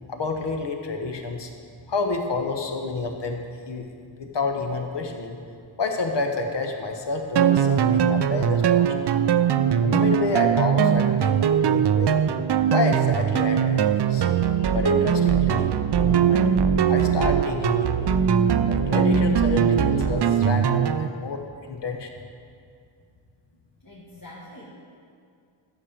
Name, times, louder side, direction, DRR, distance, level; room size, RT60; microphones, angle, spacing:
voice 1, 0.1-1.5 1.9-5.4 5.8-8.9 9.8-12.2 12.7-14.4 14.7-16.4 16.9-18.2 18.7-21.4 21.7-22.2, left 3 dB, 55° left, 4 dB, 1.1 m, -29 dB
sound 1, 7.4-21.1, right 8 dB, 55° right, 0.5 m, -21 dB
voice 2, 23.8-24.7, left 1 dB, 40° left, -7 dB, 1.8 m, -44 dB
11.5 x 7.2 x 5.1 m, 2.3 s
wide cardioid pair, 85°, 49 cm